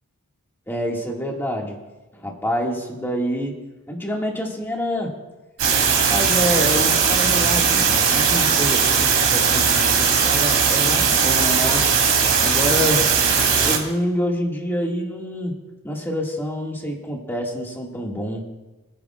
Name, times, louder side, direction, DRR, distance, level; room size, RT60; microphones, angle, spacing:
voice 1, 0.7-1.8 2.1-3.6 3.9-5.1 5.9-11.8 12.4-13.1 13.6-15.6 15.8-18.4, equal, 10° left, -1 dB, 1.9 m, -27 dB
sound 1, 5.6-13.8, right 6 dB, 65° right, 3.2 m, -18 dB
25.0 x 10.0 x 2.4 m, 1.1 s
head